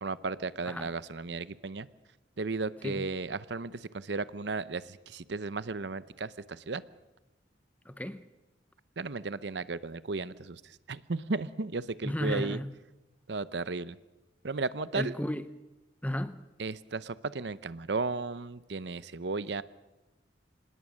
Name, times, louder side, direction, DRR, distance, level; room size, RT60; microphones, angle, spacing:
voice 1, 0.0-1.9 2.4-6.8 9.0-12.6 13.3-14.0 14.4-15.1 16.6-19.6, right 3 dB, 70° right, 0.7 m, -35 dB
voice 2, 7.9-8.3 12.0-12.7 15.0-15.5 16.0-16.5, left 1 dB, 10° left, 0.8 m, -34 dB
25.5 x 19.5 x 6.4 m
head